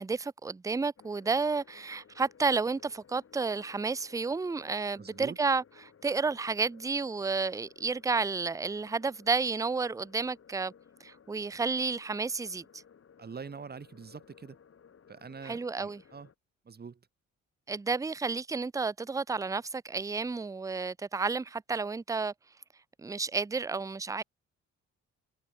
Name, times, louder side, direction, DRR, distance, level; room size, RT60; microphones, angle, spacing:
voice 1, 0.0-5.6 6.0-10.7 11.0-12.8 15.4-16.0 17.7-22.3 23.0-24.2, right 4 dB, 10° right, 0.5 m, -31 dB
sound 1, 1.0-16.3, left 7 dB, 45° left, 5.5 m, -59 dB
voice 2, 5.0-5.4 13.2-14.6 15.1-16.3 16.7-17.0, right 5 dB, 35° right, 1.8 m, -44 dB
cardioid pair, 90°, 30 cm